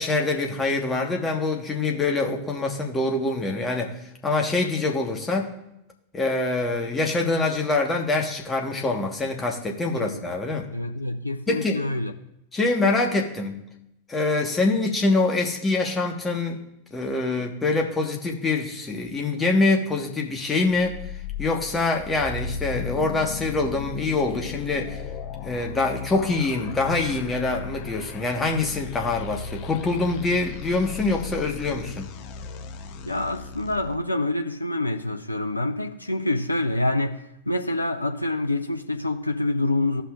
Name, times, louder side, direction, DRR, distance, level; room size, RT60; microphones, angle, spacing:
voice 1, 0.0-4.0 4.2-5.5 6.1-10.7 11.5-11.8 12.5-13.6 14.1-16.6 16.9-21.0 21.4-25.0 25.4-32.1, left 3 dB, 15° left, 1.3 m, -25 dB
voice 2, 9.9-10.2 10.7-12.1 33.1-40.0, left 2 dB, 85° left, 0.5 m, -26 dB
sound 1, 20.7-33.9, left 6 dB, 40° left, 0.7 m, -36 dB
14.5 x 5.7 x 2.4 m
figure-of-eight pair, 90°, 0 cm